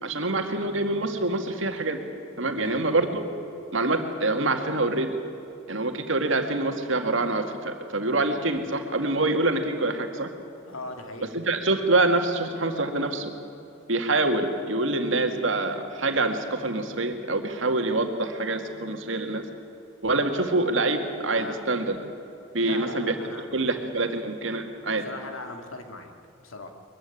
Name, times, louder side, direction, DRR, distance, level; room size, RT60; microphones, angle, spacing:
voice 1, 0.0-2.0 2.4-3.2 3.7-5.2 5.7-10.3 11.3-13.3 13.9-19.5 20.0-22.1 22.5-23.1 23.5-25.0, right 2 dB, 70° right, 5 dB, 2.0 m, -25 dB
voice 2, 2.5-2.8 10.6-11.3 21.3-21.6 22.6-24.1 24.9-26.1 26.4-26.7, left 2 dB, 85° left, 5 dB, 2.2 m, -40 dB
22.0 x 15.0 x 9.9 m, 2.8 s
head